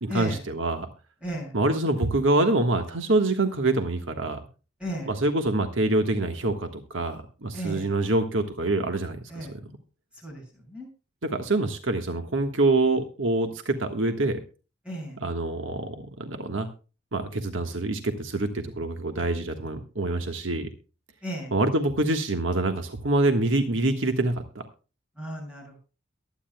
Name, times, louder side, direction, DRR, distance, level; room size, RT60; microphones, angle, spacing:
voice 1, 0.0-0.9 1.5-4.4 5.1-9.6 11.2-14.4 15.2-16.7 17.1-20.7 21.5-24.6, right 2 dB, 85° right, 6 dB, 1.5 m, -25 dB
voice 2, 1.2-1.5 4.8-5.1 7.5-7.9 9.3-9.5 10.2-10.4 10.7-10.9 14.9-15.2 21.2-21.5 25.2-25.8, equal, 5° right, 0 dB, 7.1 m, -34 dB
23.0 x 9.8 x 2.3 m, 0.33 s
head